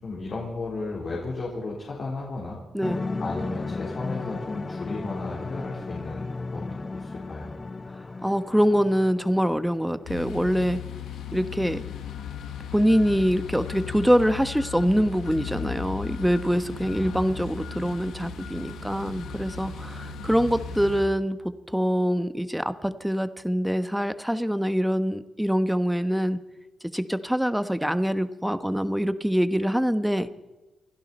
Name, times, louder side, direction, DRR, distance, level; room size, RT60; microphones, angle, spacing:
voice 1, 0.0-2.6 3.2-6.6 6.9-7.5 17.0-17.3, left 3 dB, 55° left, -4 dB, 4.2 m, -34 dB
sound 1, 2.8-10.1, left 3 dB, 35° left, 0.7 m, -35 dB
voice 2, 8.2-10.8 11.3-11.8 12.7-26.4 26.9-30.3, equal, 5° right, 11 dB, 1.2 m, -24 dB
sound 2, 10.1-21.0, left 7 dB, 80° left, 1.5 m, -37 dB
28.0 x 11.5 x 4.4 m, 1.1 s
supercardioid pair, 50°, 0 cm